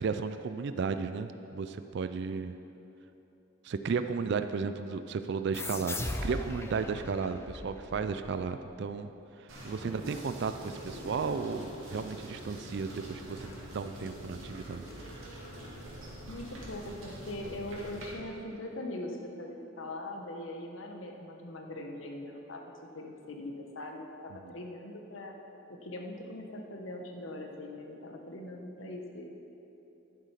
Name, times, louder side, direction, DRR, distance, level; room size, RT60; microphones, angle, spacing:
voice 1, 0.0-2.5 3.6-9.1 9.4-14.9 24.3-24.5, right 5 dB, 55° right, 10 dB, 0.4 m, -34 dB
sound 1, 5.5-8.8, left 2 dB, 10° left, 0.5 m, -39 dB
sound 2, 9.5-18.1, right 1 dB, 80° right, 2.4 m, -46 dB
voice 2, 9.8-10.2 16.3-25.4 25.7-29.3, left 1 dB, 70° left, 2 dB, 1.2 m, -41 dB
Gurgling / Car passing by / Sink (filling or washing), 10.4-16.1, equal, 45° left, 1.6 m, -49 dB
11.5 x 7.6 x 5.8 m, 3.0 s
head